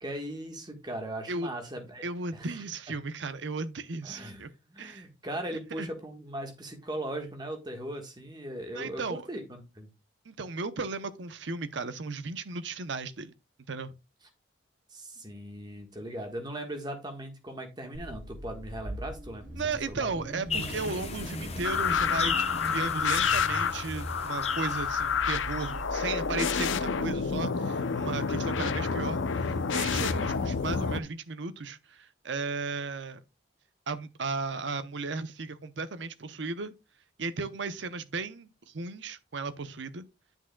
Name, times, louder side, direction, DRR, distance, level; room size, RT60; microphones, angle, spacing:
voice 1, 0.0-2.0 2.3-2.5 4.0-4.4 4.7-9.9 14.9-19.4 19.9-20.1, right 1 dB, 20° right, 1.4 m, -38 dB
voice 2, 2.0-4.5 4.8-5.0 5.8-5.9 8.7-9.3 10.3-13.3 13.7-13.9 19.6-22.4 22.7-33.2 33.9-36.7 37.2-40.1, right 4 dB, 70° right, 0.7 m, -35 dB
Car / Idling / Accelerating revving vroom, 17.9-27.4, right 1 dB, 40° right, 2.4 m, -41 dB
sound 1, 20.5-25.8, left 5 dB, 30° left, 0.7 m, -36 dB
sound 2, 21.6-31.0, left 6 dB, 80° left, 0.6 m, -29 dB
10.0 x 6.2 x 2.2 m
head